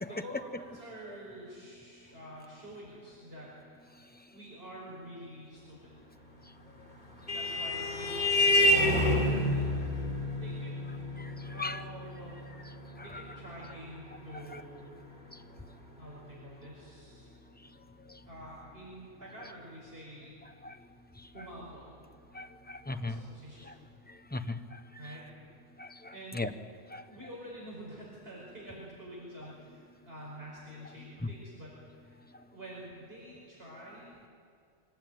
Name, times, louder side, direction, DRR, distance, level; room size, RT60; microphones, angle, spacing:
voice 1, 0.1-4.0 4.3-5.9 7.3-9.9 10.3-10.7 11.5-12.4 13.0-14.9 16.0-17.3 18.2-20.4 21.3-22.1 22.9-23.7 25.0-25.3 26.1-26.4 27.0-32.3 32.5-34.3, right 1 dB, 50° right, -5 dB, 5.6 m, -47 dB
Vehicle horn car horn honking, 6.7-15.6, left 1 dB, 35° left, 3.7 m, -30 dB
voice 2, 22.3-23.2 23.7-23.8 24.3-25.1 25.8-26.5 26.9-27.0, left 3 dB, 10° left, 8 dB, 0.8 m, -38 dB
24.0 x 19.5 x 9.2 m, 2.4 s
omnidirectional pair, 1.3 m